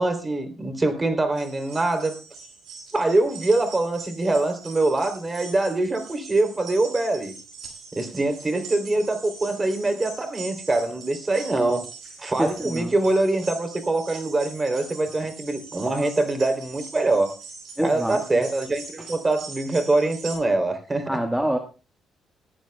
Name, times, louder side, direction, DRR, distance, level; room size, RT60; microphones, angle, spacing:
voice 1, 0.0-2.1 2.9-7.3 7.9-11.9 12.2-17.3 17.8-21.1, right 2 dB, 25° right, 3.1 m, -24 dB
sound 1, 1.3-20.4, right 5 dB, 70° right, 7.9 m, -42 dB
voice 2, 12.4-12.9 17.8-18.2 19.0-19.1 21.1-21.6, right 1 dB, 5° right, 1.4 m, -26 dB
21.0 x 14.0 x 2.2 m
cardioid pair, 90°, 0 cm